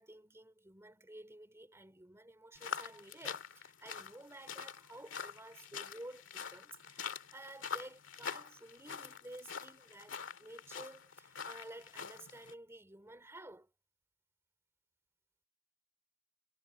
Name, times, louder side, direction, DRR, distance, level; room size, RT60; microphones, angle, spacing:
voice 1, 0.0-13.7, right 1 dB, 15° right, 2.8 m, -53 dB
sound 1, 2.5-12.5, left 7 dB, 65° left, 2.2 m, -45 dB
head